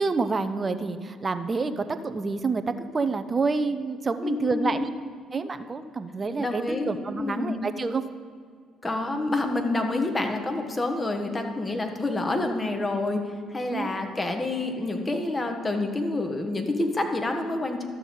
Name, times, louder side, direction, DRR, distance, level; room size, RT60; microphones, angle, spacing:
voice 1, 0.0-4.9 5.3-8.0 13.7-13.9, right 4 dB, 30° right, 10 dB, 0.7 m, -28 dB
voice 2, 4.2-4.9 6.4-7.7 8.8-13.2 13.5-17.8, left 2 dB, 25° left, 4 dB, 1.4 m, -28 dB
12.5 x 7.1 x 3.9 m, 2.1 s
hypercardioid pair, 50°, 0 cm